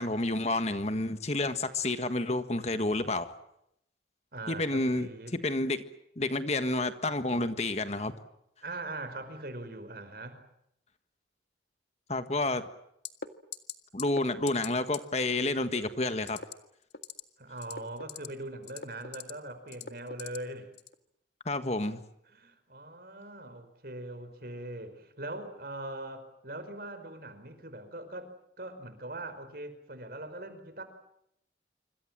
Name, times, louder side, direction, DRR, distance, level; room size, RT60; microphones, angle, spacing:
voice 1, 0.0-3.3 4.5-5.1 5.4-5.8 6.2-8.1 12.1-12.6 13.9-16.4 21.4-22.0, left 2 dB, 35° left, 10 dB, 1.6 m, -29 dB
voice 2, 4.3-5.4 8.6-10.4 17.4-20.7 22.3-28.3 28.6-30.8, right 2 dB, 55° right, 10 dB, 4.9 m, -41 dB
sound 1, 13.0-13.3 13.5-13.7 14.0-14.2 14.5-14.7 14.9-15.0 16.2-16.5 16.9-17.2 17.6-18.3 18.6-19.3 19.7-20.4 20.8-20.9, left 7 dB, 70° left, 1.8 m, -39 dB
27.0 x 25.5 x 7.6 m, 0.77 s
head